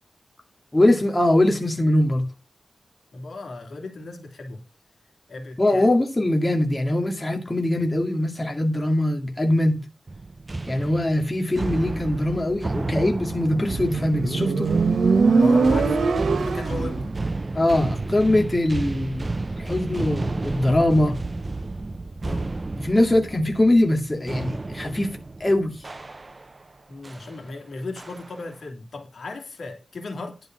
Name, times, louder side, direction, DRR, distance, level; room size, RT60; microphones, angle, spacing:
voice 1, 0.7-2.3 5.6-9.8 10.7-14.7 17.5-21.2 22.8-25.7, left 1 dB, 20° left, 2.2 m, -22 dB
voice 2, 3.1-4.6 5.3-5.9 15.4-16.1 16.4-17.2 22.2-22.6 26.9-30.4, left 2 dB, 70° left, 2.7 m, -36 dB
sound 1, 10.1-26.6 27.0-27.3 28.0-28.5, right 3 dB, 30° right, 0.6 m, -31 dB
Motorcycle, 13.5-17.0, right 4 dB, 90° right, 1.3 m, -21 dB
10.5 x 5.4 x 6.0 m
wide cardioid pair, 110°, 0 cm